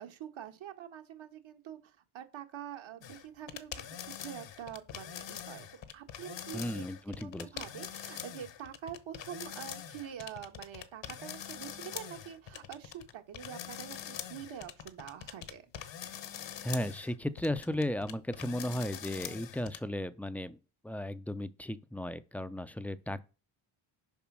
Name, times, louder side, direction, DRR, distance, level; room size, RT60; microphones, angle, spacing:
voice 1, 0.0-5.7 5.9-15.6, right 9 dB, 65° right, 1.4 m, -46 dB
sound 1, 3.0-19.8, left 9 dB, 60° left, 1.1 m, -44 dB
voice 2, 6.5-7.5 16.6-20.6 20.8-23.2, left 1 dB, 5° left, 0.4 m, -35 dB
7.1 x 5.1 x 6.0 m
cardioid pair, 100°, 49 cm